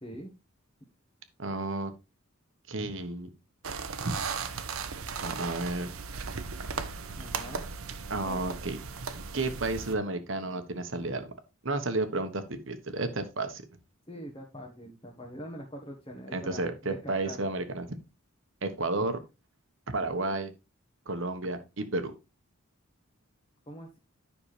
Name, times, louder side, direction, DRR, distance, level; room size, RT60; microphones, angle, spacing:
voice 1, 0.0-0.3 7.2-7.6 8.2-8.4 14.1-17.4 23.7-24.0, equal, 25° left, -1 dB, 1.4 m, -43 dB
voice 2, 1.4-1.9 2.7-3.3 4.0-4.1 5.2-5.9 8.1-8.8 9.3-11.3 11.6-13.6 16.3-18.0 18.6-19.2 19.9-20.5 21.1-22.1, right 2 dB, 60° right, 9 dB, 1.2 m, -32 dB
sound 1, 3.6-10.0, right 5 dB, 80° right, 0.9 m, -37 dB
10.0 x 5.9 x 3.3 m, 0.27 s
head